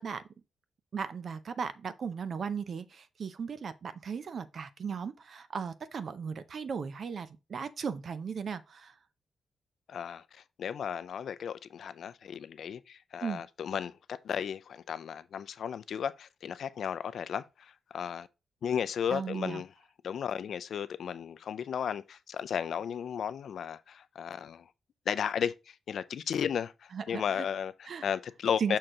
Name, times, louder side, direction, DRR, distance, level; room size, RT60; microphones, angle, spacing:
voice 1, 0.9-8.9 13.2-13.4 19.1-19.6 26.9-27.5 27.9-28.1 28.6-28.8, right 6 dB, 45° right, 0.5 m, -36 dB
voice 2, 9.9-18.3 18.6-19.7 20.0-24.6 25.1-28.8, left 8 dB, 60° left, 0.4 m, -34 dB
6.5 x 4.4 x 3.7 m
wide cardioid pair, 170°, 0 cm